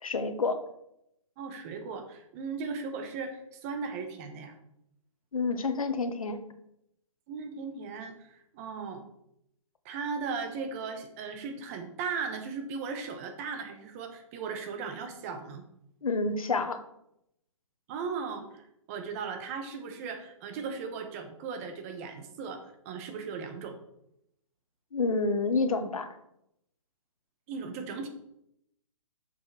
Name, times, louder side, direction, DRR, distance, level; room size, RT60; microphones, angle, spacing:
voice 1, 0.0-0.6 5.3-6.4 16.0-16.8 24.9-26.2, left 3 dB, 80° left, 8 dB, 1.3 m, -28 dB
voice 2, 1.4-4.5 7.3-9.1 9.8-15.6 17.9-23.8 27.5-28.1, right 5 dB, 25° right, 6 dB, 1.1 m, -37 dB
6.9 x 6.8 x 4.9 m, 0.79 s
hypercardioid pair, 155°, 18 cm